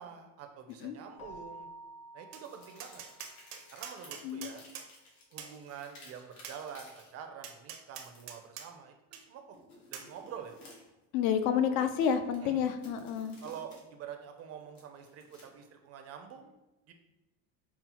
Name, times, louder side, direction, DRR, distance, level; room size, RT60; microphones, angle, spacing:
voice 1, 0.0-1.7 2.1-3.0 3.7-4.6 5.3-9.6 9.9-10.5 12.2-12.6 13.4-16.5 16.9-17.0, right 8 dB, 40° right, 5 dB, 0.5 m, -47 dB
sound 1, 0.7-0.8 2.3-7.1 7.9-8.4 9.5-11.0 11.9-13.8 14.2-15.6, left 2 dB, 85° left, 1.4 m, -56 dB
Keyboard (musical), 1.2-3.6, right 1 dB, 20° left, 0.5 m, -50 dB
Tap, 2.3-2.4 2.8-4.9 5.4-5.5 6.4-6.6 7.4-8.7 9.1-9.2 9.9-10.1, right 8 dB, 75° right, 0.7 m, -44 dB
voice 2, 4.2-4.6 11.1-13.4, left 8 dB, 65° left, 9 dB, 0.5 m, -29 dB
5.6 x 2.0 x 2.8 m, 1.0 s
cardioid pair, 135°, 39 cm